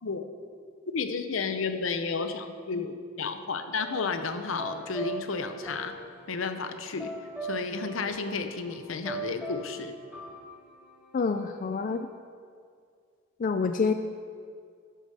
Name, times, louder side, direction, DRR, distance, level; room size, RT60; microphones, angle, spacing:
voice 1, 0.9-5.9 6.3-7.1 7.4-9.9, left 4 dB, 75° left, 8 dB, 0.7 m, -32 dB
sound 1, 3.8-12.0, right 3 dB, 5° right, 2.0 m, -41 dB
voice 2, 11.1-12.1 13.4-13.9, left 4 dB, 40° left, 7 dB, 0.3 m, -27 dB
11.0 x 5.0 x 6.6 m, 2.2 s
head